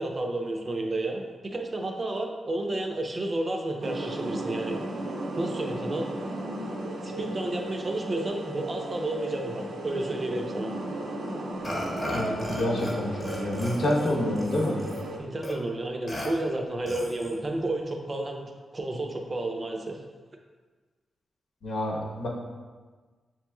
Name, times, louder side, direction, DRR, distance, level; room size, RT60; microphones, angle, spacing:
voice 1, 0.0-4.8 5.4-6.1 7.0-10.7 15.2-20.0, right 2 dB, 35° right, 2 dB, 0.6 m, -31 dB
sound 1, 3.8-15.2, right 1 dB, 80° right, 0.7 m, -35 dB
Burping eructation, 11.6-13.0 13.2-15.0 15.4-15.5 16.1-16.3 16.9-17.4, left 1 dB, 25° left, 1.0 m, -35 dB
voice 2, 12.1-14.8 21.6-22.3, left 1 dB, 70° left, -2 dB, 1.0 m, -28 dB
7.4 x 3.0 x 2.3 m, 1.4 s
wide cardioid pair, 110°, 0 cm